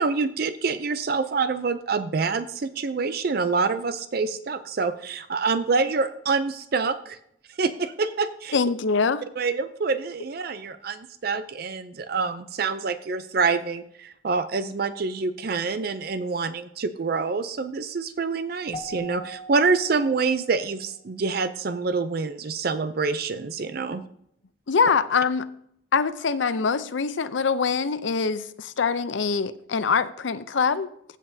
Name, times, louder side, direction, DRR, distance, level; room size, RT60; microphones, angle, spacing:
voice 1, 0.0-7.2 7.6-8.6 9.4-24.0, right 4 dB, 50° right, 0.4 m, -26 dB
voice 2, 8.5-9.2 24.7-25.5 25.9-30.9, left 5 dB, 70° left, 0.5 m, -24 dB
Keyboard (musical), 18.7-21.0, equal, 25° left, 0.7 m, -41 dB
15.5 x 7.5 x 2.7 m
head